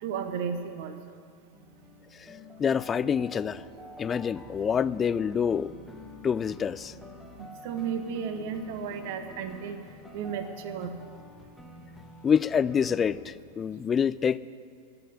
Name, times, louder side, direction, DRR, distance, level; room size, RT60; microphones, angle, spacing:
voice 1, 0.0-1.2 7.4-9.8 10.1-10.9, right 7 dB, 50° right, 8 dB, 0.9 m, -34 dB
sound 1, 1.5-13.2, left 2 dB, 5° left, 1.2 m, -48 dB
voice 2, 2.6-3.6 4.0-5.7 6.2-6.9 12.2-14.4, left 7 dB, 20° left, 18 dB, 0.3 m, -26 dB
11.0 x 8.5 x 9.8 m, 2.1 s
figure-of-eight pair, 90°, 0 cm